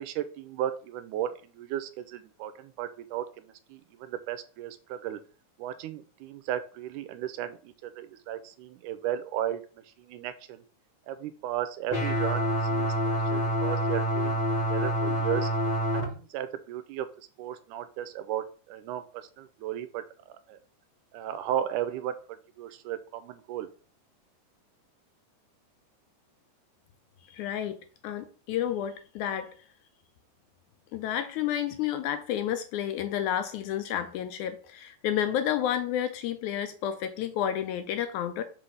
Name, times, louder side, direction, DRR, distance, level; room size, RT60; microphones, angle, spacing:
voice 1, 0.0-5.2 5.6-9.6 10.0-10.6 11.1-15.5 16.1-19.1 19.4-20.6 21.1-22.2 22.6-23.7, right 11 dB, 85° right, 2.1 m, -35 dB
sound 1, 11.9-16.0, equal, 40° left, 0.5 m, -27 dB
voice 2, 27.3-29.5 30.9-38.4, left 10 dB, 80° left, 1.9 m, -30 dB
6.0 x 3.3 x 5.5 m
omnidirectional pair, 3.7 m